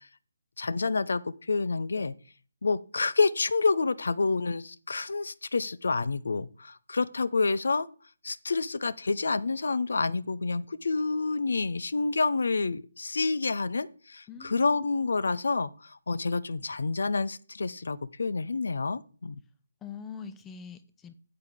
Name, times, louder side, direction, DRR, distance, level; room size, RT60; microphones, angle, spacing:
voice 1, 0.6-2.1 2.6-7.9 8.2-19.4, left 4 dB, 65° left, 0.6 m, -28 dB
voice 2, 14.3-15.0 19.8-21.1, left 7 dB, 10° left, 0.6 m, -44 dB
9.6 x 7.9 x 3.5 m
figure-of-eight pair, 145°, 0 cm